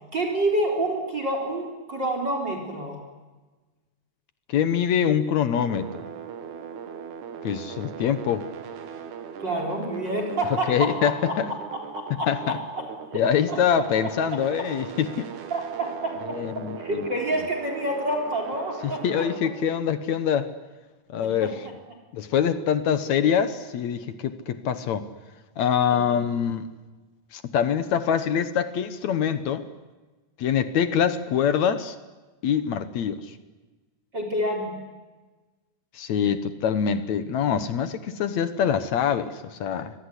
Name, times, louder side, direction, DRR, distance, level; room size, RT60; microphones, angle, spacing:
voice 1, 0.1-3.0 9.4-11.3 11.9-12.6 13.1-13.8 15.5-16.4 16.8-19.2 21.4-21.5 25.9-26.0 34.1-34.8, right 1 dB, 30° right, 3 dB, 4.4 m, -28 dB
voice 2, 4.5-5.9 7.4-8.5 10.7-11.5 12.3-12.6 13.1-15.3 16.3-17.1 18.8-20.5 21.1-21.7 22.1-25.0 25.6-26.7 27.3-29.7 30.4-32.0 32.4-33.4 35.9-39.9, left 8 dB, 65° left, 12 dB, 2.2 m, -24 dB
sound 1, 5.6-19.4, right 7 dB, 65° right, 3.0 m, -39 dB
26.0 x 22.5 x 9.9 m, 1.3 s
omnidirectional pair, 3.8 m